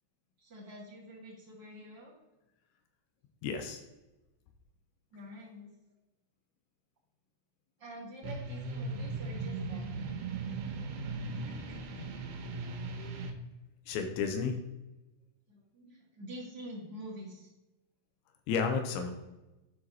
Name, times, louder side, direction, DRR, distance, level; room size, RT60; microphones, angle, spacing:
voice 1, 0.4-2.1 5.1-5.7 7.8-10.2 11.3-12.2 15.5-17.5, equal, 55° right, -7 dB, 1.2 m, -47 dB
voice 2, 3.4-3.8 13.9-14.6 18.5-19.1, left 5 dB, 90° left, 5 dB, 3.0 m, -32 dB
sound 1, 8.2-13.3, right 3 dB, 85° right, 3.3 m, -38 dB
12.5 x 4.8 x 2.9 m, 1.0 s
omnidirectional pair, 5.2 m